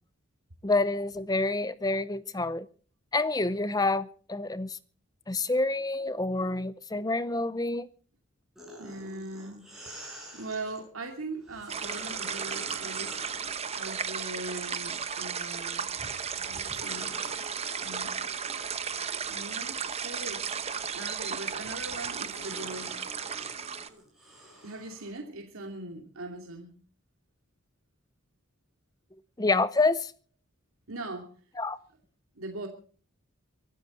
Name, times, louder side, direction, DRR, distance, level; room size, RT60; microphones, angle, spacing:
voice 1, 0.6-2.7 3.1-4.8 5.3-7.9 29.4-30.1 31.6-31.8, left 2 dB, 20° left, 0.6 m, -28 dB
sound 1, 8.6-10.8 11.4-15.5 16.0-25.1, equal, ahead, 7.4 m, -48 dB
voice 2, 8.8-9.6 10.3-13.2 13.7-15.9 16.4-17.4 17.8-18.1 19.3-20.6 20.9-23.0 24.6-26.8 30.9-31.3 32.4-32.7, right 2 dB, 85° right, 2.5 m, -40 dB
sound 2, 11.7-23.9, right 7 dB, 30° right, 0.9 m, -35 dB
24.0 x 12.5 x 4.3 m
head